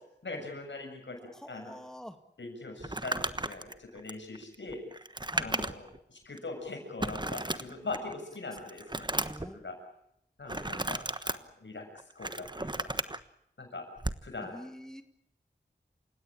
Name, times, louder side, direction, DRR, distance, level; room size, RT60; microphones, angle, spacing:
voice 1, 0.2-1.2 1.5-1.8 2.4-4.8 5.4-9.1 9.5-9.8 10.4-11.8 12.2-12.9 13.6-13.8 14.2-14.6, left 3 dB, 90° left, 3 dB, 7.0 m, -41 dB
voice 2, 1.4-2.2 5.3-5.5 9.2-9.6 10.5-10.7 14.5-15.0, equal, 5° left, 7 dB, 2.1 m, -45 dB
Crumpling crinkling, 2.8-6.0 6.4-6.5 7.0-8.1 8.5-9.5 10.5-11.4 12.0-13.2 14.0-14.3, right 2 dB, 25° right, 1.2 m, -34 dB
28.5 x 17.0 x 8.7 m, 0.79 s
wide cardioid pair, 50°, 18 cm